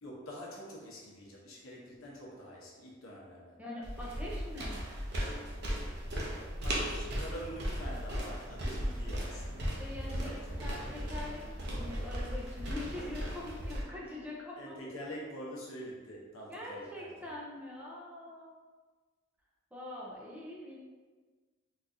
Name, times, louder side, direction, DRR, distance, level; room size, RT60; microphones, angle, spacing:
voice 1, 0.0-3.6 6.6-9.8 10.1-10.8 12.9-13.1 14.6-17.3, equal, 80° left, -4 dB, 0.8 m, -46 dB
voice 2, 3.6-4.8 9.8-10.3 10.6-14.8 16.5-18.5 19.7-20.8, left 1 dB, 5° right, -5 dB, 0.4 m, -43 dB
sound 1, 3.8-13.8, equal, 50° right, 0.6 m, -37 dB
3.9 x 2.4 x 2.5 m, 1.4 s
head